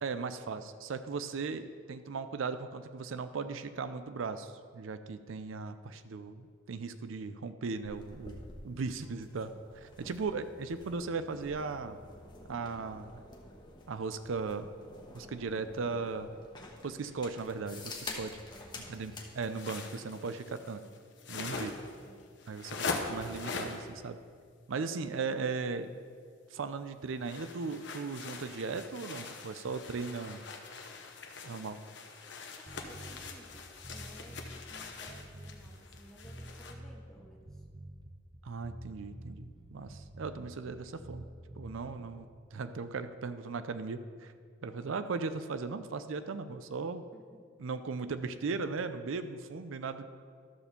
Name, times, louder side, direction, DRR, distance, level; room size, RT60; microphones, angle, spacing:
voice 1, 0.0-8.4 8.6-12.0 12.5-13.2 13.9-14.7 15.1-16.3 16.8-18.3 18.9-20.8 21.3-21.7 22.5-24.2 24.7-25.9 26.5-30.4 31.4-31.8 38.4-41.3 41.6-44.3 44.6-47.0 47.6-50.1, right 4 dB, 80° right, 11 dB, 0.5 m, -37 dB
sound 1, 7.8-19.3, left 2 dB, 20° left, 1.0 m, -49 dB
voice 2, 9.0-9.6 10.0-10.3 18.3-19.1 20.7-21.0 21.9-22.4 25.0-25.3 32.6-37.6 47.1-47.4, equal, ahead, -1 dB, 1.0 m, -57 dB
sound 2, 19.3-23.9 27.2-36.7, left 4 dB, 60° left, 0.9 m, -42 dB
sound 3, 32.7-42.3, right 1 dB, 20° right, 0.6 m, -48 dB
12.5 x 4.3 x 6.8 m, 2.1 s
head